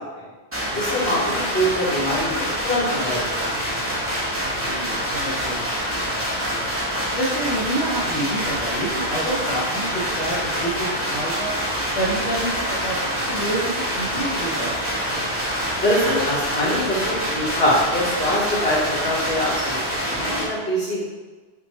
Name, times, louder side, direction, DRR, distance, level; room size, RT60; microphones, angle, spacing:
sound 1, 0.5-20.4, equal, 15° right, 0.9 m, -26 dB
voice 1, 0.8-3.4 3.7-3.9 15.8-21.0, equal, 60° left, -8 dB, 1.8 m, -24 dB
voice 2, 4.4-6.7 7.1-11.5 11.9-14.8 15.1-15.2, right 1 dB, 80° left, -8 dB, 1.2 m, -28 dB
5.7 x 2.9 x 3.1 m, 1.3 s
omnidirectional pair, 1.2 m